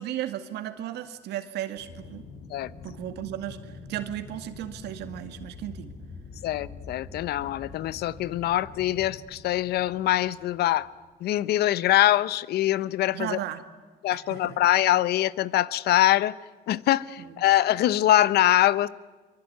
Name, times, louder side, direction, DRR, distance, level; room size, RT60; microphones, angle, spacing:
voice 1, 0.0-2.2 2.8-5.9 13.1-13.6 14.3-14.5 17.2-17.3, right 12 dB, 80° right, 9 dB, 2.1 m, -35 dB
Aircraft, 1.8-11.2, left 4 dB, 55° left, 6.5 m, -45 dB
voice 2, 6.4-10.9 11.2-13.4 14.0-16.4 16.7-18.9, left 14 dB, 70° left, 18 dB, 0.9 m, -23 dB
24.5 x 24.0 x 9.5 m, 1.3 s
cardioid pair, 110°, 17 cm